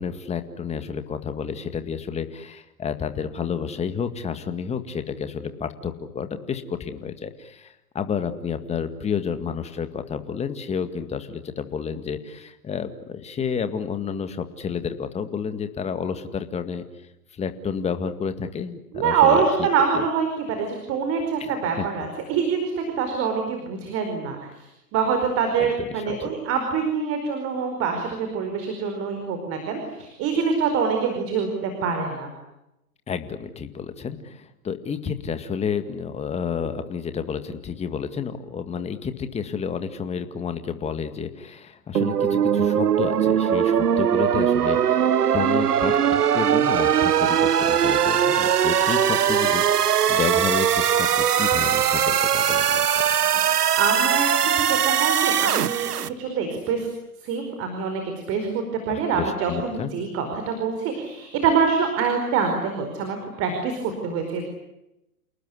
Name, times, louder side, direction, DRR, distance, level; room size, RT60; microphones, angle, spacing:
voice 1, 0.0-16.8 17.3-19.5 19.9-20.1 21.4-21.8 25.6-26.3 33.1-52.9 58.9-59.9, left 6 dB, 15° left, 9 dB, 2.0 m, -30 dB
voice 2, 18.9-24.5 24.9-32.3 53.4-56.9 57.2-64.4, right 6 dB, 30° right, 5 dB, 4.9 m, -25 dB
sound 1, 41.9-56.1, right 9 dB, 85° right, 1.3 m, -20 dB
29.0 x 19.0 x 9.9 m, 0.89 s
hypercardioid pair, 130°, 45 cm